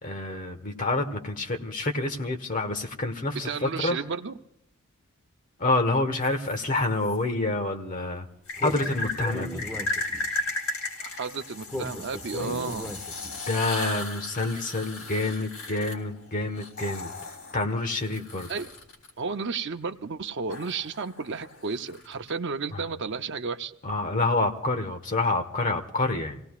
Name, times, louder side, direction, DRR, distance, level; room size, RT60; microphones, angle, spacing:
voice 1, 0.0-4.0 5.6-8.3 8.6-9.6 13.5-17.1 17.5-18.5 22.7-22.8 23.8-26.4, left 2 dB, 40° left, 6 dB, 1.4 m, -28 dB
voice 2, 3.4-4.3 11.0-12.9 18.5-18.7 19.2-23.7, right 5 dB, 55° right, 8 dB, 0.7 m, -32 dB
sound 1, 6.2-7.2 8.5-19.1 20.5-22.3, left 2 dB, 85° left, 3.4 m, -36 dB
Speech, 8.6-10.4 11.7-13.4, left 1 dB, 5° left, 1.3 m, -36 dB
28.0 x 17.5 x 2.4 m, 0.79 s
head